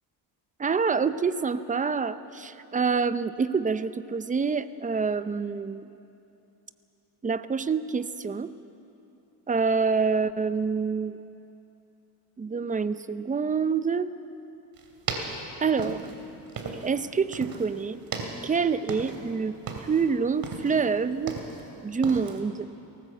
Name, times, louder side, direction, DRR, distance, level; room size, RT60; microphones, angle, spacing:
voice 1, 0.6-5.9 7.2-8.5 9.5-11.2 12.4-14.1 15.6-16.0 16.8-18.0 18.4-19.5 19.8-21.4 21.8-22.7, right 5 dB, 15° right, 13 dB, 0.6 m, -26 dB
sound 1, 14.8-17.0 17.3-17.7 18.0-19.3 19.6-20.0 20.4-21.7 22.0-22.4, right 4 dB, 45° right, 3.1 m, -36 dB
19.5 x 18.0 x 7.9 m, 2.8 s
cardioid pair, 115°, 46 cm